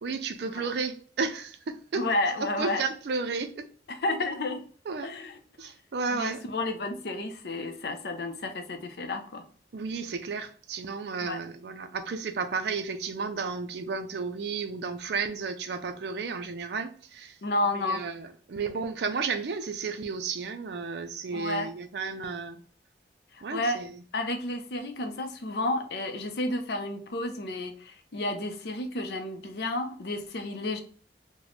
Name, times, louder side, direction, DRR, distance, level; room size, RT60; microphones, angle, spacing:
voice 1, 0.0-2.1 2.6-3.7 4.9-5.1 5.6-6.4 9.7-17.4 17.7-22.6 23.4-24.0, right 4 dB, 70° right, 9 dB, 0.4 m, -33 dB
voice 2, 1.9-2.8 3.9-4.6 5.0-5.4 5.6-5.7 6.1-9.4 11.2-11.4 17.4-18.0 21.3-21.7 23.3-23.8 24.1-30.8, left 2 dB, 65° left, 7 dB, 0.5 m, -31 dB
3.0 x 2.1 x 4.0 m, 0.43 s
head